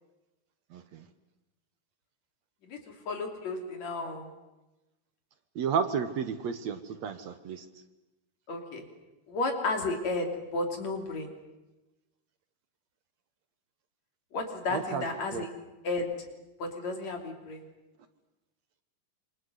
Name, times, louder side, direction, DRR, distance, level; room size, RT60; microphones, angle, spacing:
voice 1, 0.7-1.1 5.6-7.7 14.7-15.1 15.3-15.5, right 7 dB, 65° right, 10 dB, 2.2 m, -32 dB
voice 2, 3.1-4.3 8.5-8.8 9.3-11.3 14.3-15.5 15.8-16.1 16.6-17.6, left 2 dB, 60° left, 3 dB, 4.3 m, -32 dB
27.0 x 26.0 x 8.1 m, 1.0 s
omnidirectional pair, 3.7 m